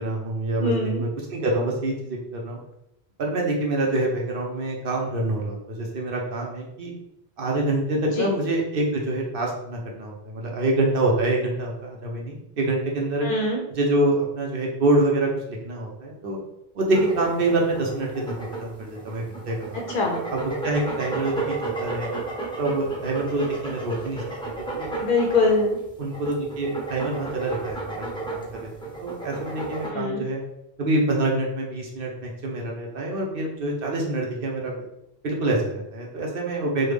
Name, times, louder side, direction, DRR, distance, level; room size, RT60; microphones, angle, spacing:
voice 1, 0.0-2.6 3.2-6.9 7.4-13.3 13.8-16.4 16.7-19.8 20.3-22.2 22.6-24.9 26.0-30.4 30.8-34.7 35.2-36.9, right 2 dB, 60° right, -1 dB, 0.7 m, -26 dB
voice 2, 0.6-1.0 8.2-8.4 13.2-13.6 19.7-20.3 25.0-25.8 29.9-30.2, left 3 dB, 60° left, 0 dB, 0.6 m, -23 dB
sound 1, 16.9-29.9, right 3 dB, 5° left, 0.4 m, -33 dB
3.3 x 2.1 x 3.3 m, 0.84 s
omnidirectional pair, 1.1 m